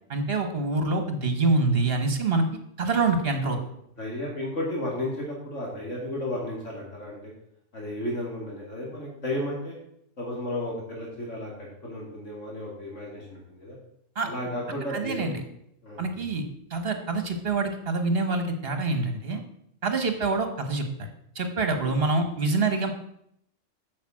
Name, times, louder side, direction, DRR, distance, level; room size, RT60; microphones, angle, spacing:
voice 1, 0.1-2.4 2.8-3.6 14.2-14.3 14.9-15.4 16.0-19.4 19.8-21.1 21.4-22.9, right 3 dB, 50° right, 6 dB, 1.7 m, -26 dB
voice 2, 4.0-7.3 7.7-9.8 10.2-13.8 14.2-15.4 15.8-16.0 21.8-21.9, left 1 dB, 70° left, -3 dB, 3.0 m, -33 dB
8.6 x 7.0 x 7.5 m, 0.73 s
omnidirectional pair, 1.3 m